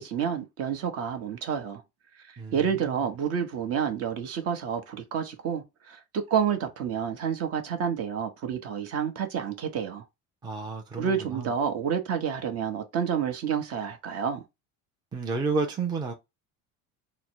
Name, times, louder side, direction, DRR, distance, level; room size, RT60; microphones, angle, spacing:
voice 1, 0.0-1.8 2.2-10.0 11.0-14.4, right 7 dB, 45° right, 0.9 m, -29 dB
voice 2, 2.4-3.0 10.4-11.5 15.1-16.1, right 4 dB, 15° right, 0.4 m, -31 dB
3.7 x 2.1 x 4.4 m
cardioid pair, 150°, 32 cm